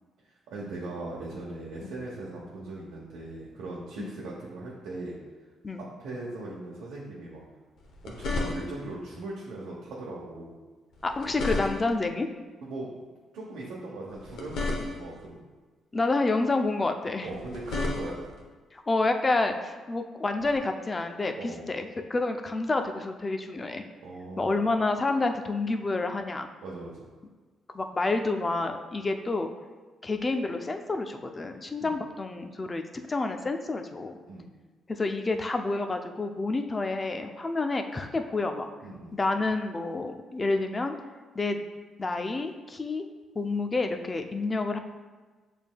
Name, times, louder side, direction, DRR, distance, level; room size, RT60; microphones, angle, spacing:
voice 1, 0.5-5.2 5.8-7.5 8.0-10.5 12.6-13.0 13.3-15.4 17.2-18.2 21.3-21.7 24.0-24.6 26.6-27.1 31.8-32.1 34.2-34.5 38.8-39.2, right 2 dB, 90° right, -5 dB, 0.9 m, -39 dB
sound 1, 7.8-8.9 10.9-12.1 14.1-15.3 17.2-18.4 20.4-20.6, left 2 dB, 70° left, 0.8 m, -33 dB
voice 2, 11.0-12.3 15.9-17.3 18.7-23.8 24.4-26.5 27.7-29.5 30.0-34.2 34.9-38.7 39.1-41.0 41.4-41.6 42.0-43.0 43.4-44.8, left 3 dB, 25° left, 6 dB, 0.4 m, -29 dB
7.1 x 3.4 x 2.2 m, 1.3 s
cardioid pair, 90°, 0 cm